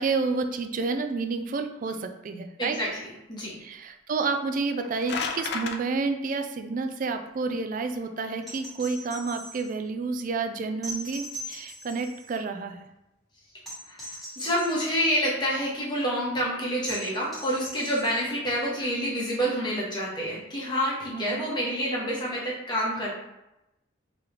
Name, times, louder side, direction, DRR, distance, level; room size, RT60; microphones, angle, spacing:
voice 1, 0.0-2.8 3.6-12.9 21.1-21.5, right 4 dB, 40° right, 7 dB, 0.3 m, -30 dB
sound 1, 4.6-5.8, left 4 dB, 55° left, 0.3 m, -31 dB
sound 2, 8.4-9.7 10.8-12.3 13.6-14.9 16.9-18.3 20.1-20.2, right 1 dB, ahead, 1.2 m, -40 dB
voice 2, 13.9-23.1, equal, 20° left, -5 dB, 1.1 m, -28 dB
3.7 x 3.0 x 3.3 m, 0.91 s
head